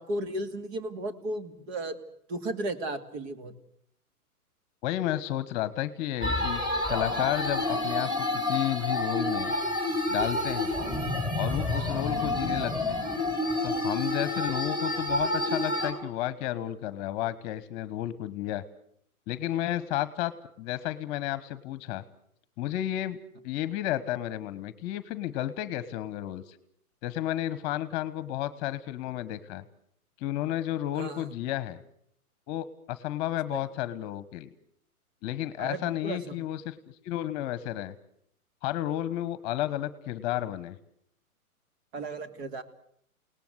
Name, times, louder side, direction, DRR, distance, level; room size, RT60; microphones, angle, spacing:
voice 1, 0.0-2.0 2.3-3.5 30.9-31.3 33.5-33.6 35.6-36.2 41.9-42.6, right 2 dB, 45° right, 9 dB, 2.8 m, -34 dB
voice 2, 4.8-6.6 6.9-8.1 8.4-9.5 10.1-10.7 11.4-13.0 13.6-18.6 19.3-20.3 20.6-22.0 22.6-23.2 23.4-26.6 27.0-29.6 30.2-31.8 32.5-34.5 35.2-36.8 37.0-37.9 38.6-40.8, left 13 dB, 30° left, 15 dB, 1.3 m, -32 dB
sound 1, 6.2-15.9, left 1 dB, 10° right, 4.8 m, -29 dB
29.0 x 19.0 x 8.0 m, 0.70 s
hypercardioid pair, 135°, 44 cm